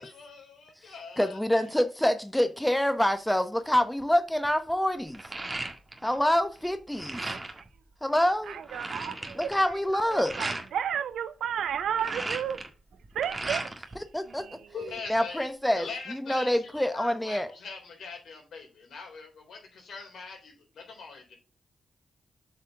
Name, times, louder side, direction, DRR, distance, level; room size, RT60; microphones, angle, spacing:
voice 1, 0.0-1.7 14.7-21.4, left 5 dB, 70° left, 3.6 m, -43 dB
voice 2, 1.2-5.2 6.0-7.4 8.0-8.6 9.3-10.3 14.1-14.6 15.1-17.5, left 1 dB, 5° left, 1.2 m, -26 dB
sound 1, 3.7-4.0 4.4-6.2 6.5-7.7 8.2-8.3 8.4-10.7 11.7-14.0 14.3-15.2, right 2 dB, 30° right, 1.7 m, -37 dB
voice 3, 7.2-7.7 8.5-9.5 9.9-12.7 13.1-13.6 14.3-15.0, right 9 dB, 75° right, 0.7 m, -33 dB
7.9 x 5.6 x 3.6 m
hypercardioid pair, 40°, 0 cm